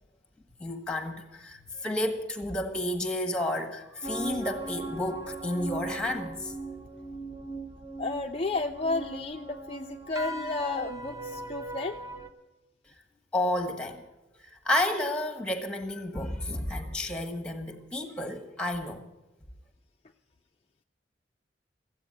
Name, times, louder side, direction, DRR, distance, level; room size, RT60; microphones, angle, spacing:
voice 1, 0.6-6.5 13.3-14.0 14.4-19.0, left 1 dB, 5° left, 1.4 m, -31 dB
sound 1, 4.0-12.3, right 2 dB, 20° right, 0.9 m, -39 dB
voice 2, 8.0-12.0, left 3 dB, 30° left, 0.4 m, -32 dB
14.5 x 8.3 x 9.9 m
head